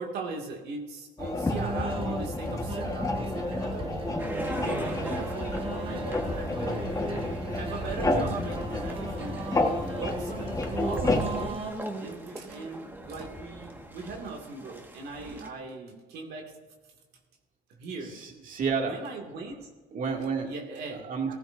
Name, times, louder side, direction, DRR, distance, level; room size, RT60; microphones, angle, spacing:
voice 1, 0.0-3.9 4.5-6.8 7.5-9.4 9.9-10.5 10.8-11.7 12.0-16.5 17.7-18.1 18.8-19.7 20.4-21.4, right 3 dB, 70° right, 1 dB, 2.2 m, -39 dB
sound 1, 1.2-11.5, left 2 dB, 20° left, 1.3 m, -30 dB
sound 2, 1.5-11.7, right 3 dB, 30° right, 1.2 m, -37 dB
voice 2, 4.0-4.6 18.1-19.0 19.9-20.5 21.0-21.3, right 5 dB, 50° right, 2 dB, 2.3 m, -31 dB
sound 3, 4.2-15.5, right 1 dB, 10° right, 1.6 m, -42 dB
16.0 x 15.0 x 2.6 m, 1.3 s
cardioid pair, 110°, 17 cm